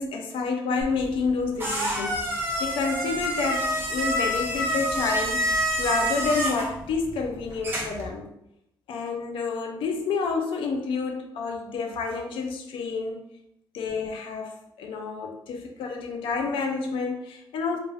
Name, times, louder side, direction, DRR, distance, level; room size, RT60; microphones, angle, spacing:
voice 1, 0.0-5.5 5.8-8.3 8.9-13.2 13.7-17.8, left 4 dB, 85° left, 3 dB, 0.4 m, -29 dB
sound 1, 0.8-8.1, equal, 25° right, 0.6 m, -28 dB
2.3 x 2.0 x 3.3 m, 0.80 s
cardioid pair, 160°, 9 cm